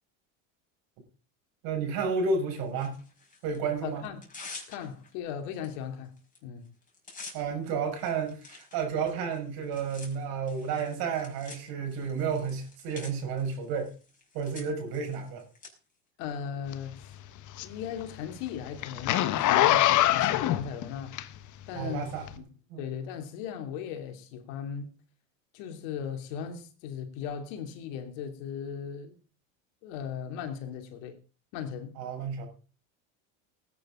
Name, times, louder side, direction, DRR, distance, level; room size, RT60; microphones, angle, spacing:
voice 1, 1.6-2.9 3.4-4.0 7.3-13.9 14.3-15.4 21.7-22.4 22.7-22.8 32.0-32.5, right 5 dB, 65° right, 6.2 m, -31 dB
Tearing, 2.8-3.6 4.0-5.1 5.6-5.8 6.0-6.4 6.6-15.7, left 3 dB, 20° left, 5.5 m, -49 dB
voice 2, 3.8-4.2 4.7-6.1 6.4-6.6 16.2-17.1 17.6-21.2 21.7-22.1 22.4-22.5 22.8-24.9 25.5-29.2 29.8-31.2 31.5-32.0, left 8 dB, 75° left, 2.9 m, -37 dB
Zipper (clothing), 16.7-21.7 22.2-22.3, left 14 dB, 50° left, 1.3 m, -24 dB
19.5 x 9.9 x 3.8 m
supercardioid pair, 105°, 39 cm